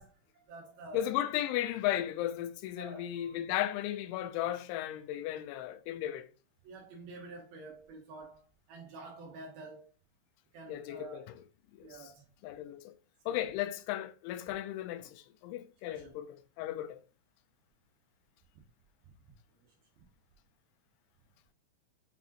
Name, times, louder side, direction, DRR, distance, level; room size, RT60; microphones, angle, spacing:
voice 1, 0.0-1.1 2.8-3.5 6.6-9.9 10.5-11.2 11.8-12.3 13.3-13.5 15.9-16.2 19.6-20.1, right 3 dB, 75° right, 2.3 m, -49 dB
voice 2, 0.9-6.3 10.7-11.3 11.8-12.1 12.4-12.9 13.3-17.0, left 12 dB, 85° left, 3.0 m, -35 dB
8.4 x 4.0 x 2.9 m
omnidirectional pair, 5.3 m